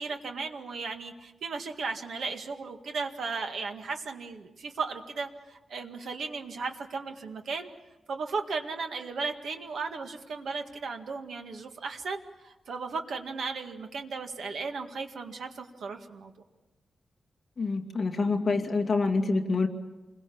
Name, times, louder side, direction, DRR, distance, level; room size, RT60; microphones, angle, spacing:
voice 1, 0.0-7.7 8.1-16.3, right 4 dB, 65° right, 5 dB, 1.9 m, -36 dB
voice 2, 17.6-19.7, left 3 dB, 30° left, 1 dB, 2.2 m, -26 dB
28.0 x 22.0 x 7.2 m, 1.1 s
wide cardioid pair, 180°, 0 cm